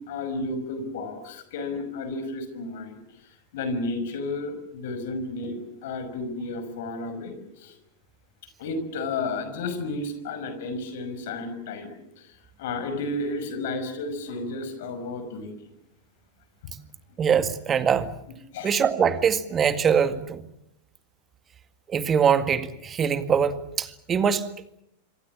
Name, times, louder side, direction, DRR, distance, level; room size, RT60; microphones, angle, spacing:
voice 1, 0.0-7.8 8.6-15.5 16.6-16.7 18.5-18.7, left 2 dB, 55° left, 10 dB, 5.7 m, -32 dB
voice 2, 17.2-18.1 18.6-20.4 21.9-24.5, right 7 dB, 25° right, 11 dB, 2.0 m, -23 dB
26.5 x 25.5 x 7.2 m, 0.77 s
figure-of-eight pair, 90°, 0 cm